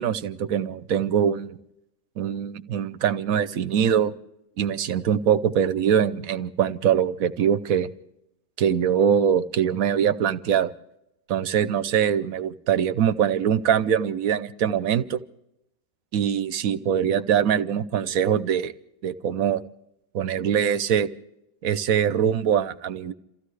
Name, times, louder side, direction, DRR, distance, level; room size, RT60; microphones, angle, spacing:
voice 1, 0.0-1.6 2.2-4.1 4.6-7.9 8.6-10.7 11.3-15.2 16.1-18.7 19.0-19.6 20.1-21.1 21.6-23.1, right 8 dB, 75° right, 13 dB, 1.2 m, -23 dB
28.5 x 15.0 x 3.3 m, 0.83 s
omnidirectional pair, 1.5 m